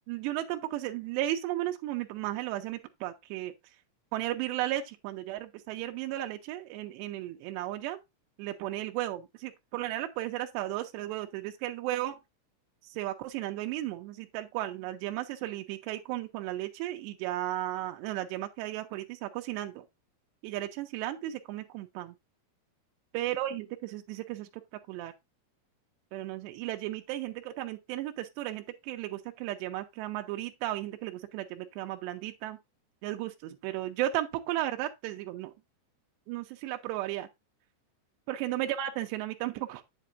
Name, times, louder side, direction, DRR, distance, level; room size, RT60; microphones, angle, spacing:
voice 1, 0.1-3.5 4.1-8.0 8.4-12.2 12.9-19.8 20.4-22.2 23.1-24.5 24.9-25.1 26.1-32.6 33.0-35.5 36.3-37.3 38.3-39.8, right 14 dB, 85° right, 2.9 m, -34 dB
8.3 x 7.7 x 2.5 m
omnidirectional pair, 5.0 m